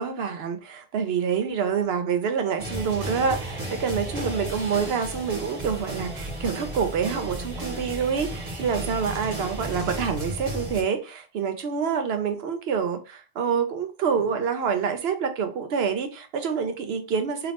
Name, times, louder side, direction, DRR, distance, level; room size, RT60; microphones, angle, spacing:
voice 1, 0.0-17.5, right 6 dB, 80° right, 0.9 m, -27 dB
sound 1, 2.6-10.8, right 1 dB, 20° right, 1.6 m, -34 dB
3.7 x 2.9 x 3.4 m
omnidirectional pair, 1.0 m